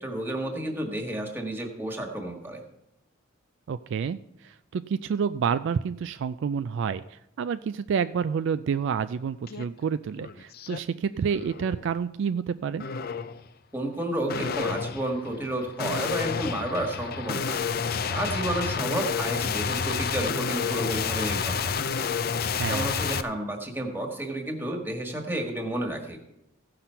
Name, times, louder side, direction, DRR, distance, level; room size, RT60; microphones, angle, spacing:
voice 1, 0.0-2.6 13.7-17.6 18.1-21.7 22.7-26.2, right 1 dB, 10° right, 2 dB, 1.5 m, -31 dB
voice 2, 3.7-12.9 22.4-22.9, right 6 dB, 60° right, 12 dB, 0.3 m, -29 dB
sound 1, 9.5-9.6 10.1-10.8 11.3-11.7 12.8-13.4 14.3-23.2, left 6 dB, 50° left, 0.5 m, -30 dB
15.5 x 5.9 x 5.6 m, 0.87 s
head